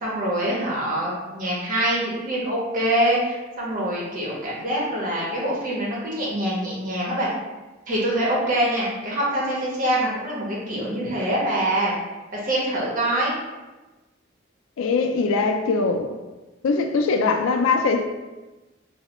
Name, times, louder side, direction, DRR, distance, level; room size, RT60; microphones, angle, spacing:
voice 1, 0.0-7.3 7.9-11.9 12.3-13.3, right 1 dB, 45° right, 0.8 m, -24 dB
voice 2, 14.8-16.1 16.6-18.1, left 4 dB, 85° left, 0.3 m, -21 dB
3.1 x 2.0 x 2.9 m
head